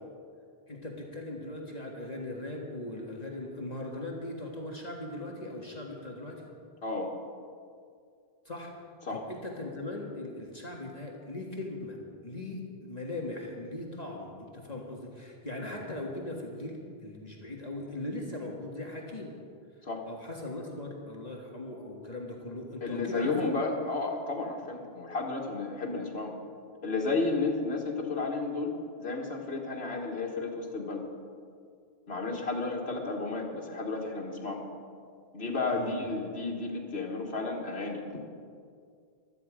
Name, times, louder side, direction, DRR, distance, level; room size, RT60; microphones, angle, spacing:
voice 1, 0.7-6.4 8.5-8.7 9.1-12.0 12.2-19.3 20.1-23.5 35.7-36.0, left 2 dB, 40° left, -1 dB, 1.8 m, -39 dB
voice 2, 22.8-26.3 26.8-31.0 32.1-34.6 35.3-38.2, left 3 dB, 75° left, 0 dB, 2.0 m, -32 dB
16.0 x 12.5 x 5.0 m, 2.2 s
omnidirectional pair, 1.1 m